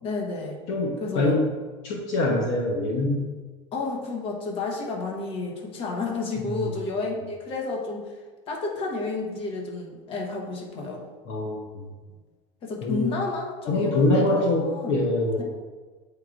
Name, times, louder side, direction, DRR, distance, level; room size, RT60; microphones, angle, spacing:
voice 1, 0.0-0.6 1.0-1.4 3.7-8.2 8.5-11.0 12.6-15.0 15.4-15.5, left 3 dB, 35° left, 0 dB, 1.1 m, -31 dB
voice 2, 0.7-1.4 1.8-3.3 6.4-6.6 11.3-11.9 12.8-13.1 13.7-15.4, left 2 dB, 60° left, 0 dB, 0.9 m, -24 dB
8.1 x 4.8 x 2.5 m, 1.4 s
cardioid pair, 160°, 16 cm